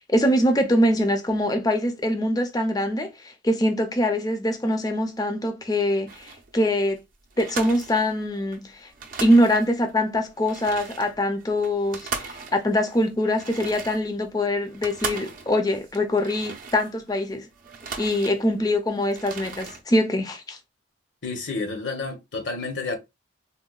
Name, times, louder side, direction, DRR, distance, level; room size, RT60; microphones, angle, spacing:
voice 1, 0.1-7.0 7.4-8.9 9.2-17.5 18.0-20.6, left 1 dB, 20° left, 0.4 m, -23 dB
sound 1, 6.1-6.5 6.9-7.0 7.3-8.6 8.9-9.9 10.3-17.2 17.5-18.7 19.0-19.8, right 5 dB, 45° right, 0.5 m, -37 dB
voice 2, 21.2-23.0, left 3 dB, 65° left, 0.8 m, -30 dB
3.8 x 2.2 x 2.3 m
head